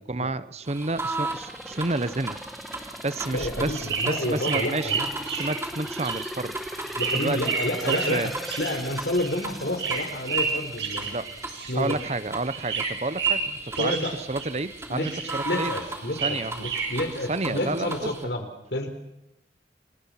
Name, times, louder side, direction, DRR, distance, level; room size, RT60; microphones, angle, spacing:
voice 1, 0.1-2.4 2.8-5.0 5.4-6.6 7.1-7.6 7.9-8.3 11.0-11.3 11.7-14.0 14.3-15.7 16.2-16.7 17.3-18.1, right 2 dB, 35° right, 15 dB, 0.8 m, -30 dB
sound 1, 0.6-18.2, right 2 dB, 15° right, 3.3 m, -38 dB
sound 2, 1.2-12.0 12.4-12.5, equal, ahead, 1.3 m, -40 dB
sound 3, 3.2-12.2 12.5-14.7 15.0-17.0, right 5 dB, 80° right, 7.9 m, -31 dB
voice 2, 3.3-5.1 7.0-8.3 8.6-11.2 11.7-12.0 13.8-14.1 14.9-15.1 15.4-18.9, left 1 dB, 70° left, 7 dB, 4.1 m, -29 dB
29.5 x 24.0 x 5.8 m, 0.88 s
head